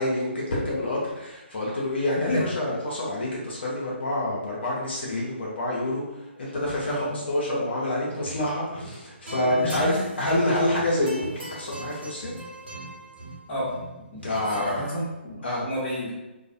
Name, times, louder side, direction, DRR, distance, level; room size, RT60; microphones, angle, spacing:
voice 1, 0.0-12.3 14.2-14.8 15.4-15.7, left 1 dB, 65° left, -5 dB, 0.6 m, -27 dB
sound 1, 8.2-8.5 8.7-14.9, right 1 dB, 70° right, 1.0 m, -40 dB
voice 2, 14.5-16.1, equal, 25° left, -7 dB, 1.0 m, -31 dB
2.3 x 2.0 x 2.5 m, 1.0 s
figure-of-eight pair, 135°, 6 cm